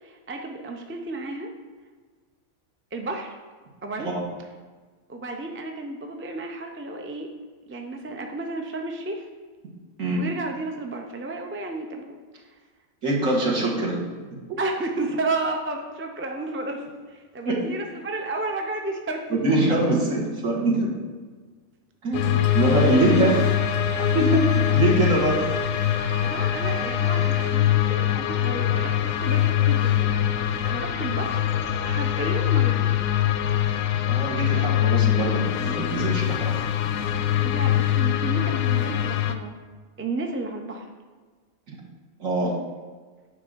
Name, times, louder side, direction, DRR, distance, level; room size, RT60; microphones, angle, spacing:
voice 1, 0.0-1.5 2.9-3.4 3.8-4.1 5.1-7.3 7.7-9.3 10.1-12.4 14.6-19.8 22.9-23.1 26.2-30.2 30.6-31.5 31.8-33.0 34.5-34.7 37.3-39.5 40.0-40.9, right 2 dB, 15° right, 3 dB, 0.4 m, -32 dB
voice 2, 13.0-14.0 17.4-17.6 19.3-21.0 22.0-23.4 24.1-24.4 24.7-25.4 34.0-36.5 41.7-41.8 42.2-42.6, right 2 dB, 65° right, -4 dB, 2.1 m, -23 dB
sound 1, 17.4-17.5 22.1-33.8, right 1 dB, 40° right, 1.5 m, -46 dB
sound 2, 22.1-39.3, left 12 dB, 75° left, 1.0 m, -23 dB
sound 3, 22.4-27.5, right 3 dB, 90° right, 1.6 m, -35 dB
9.4 x 3.7 x 6.2 m, 1.5 s
omnidirectional pair, 1.5 m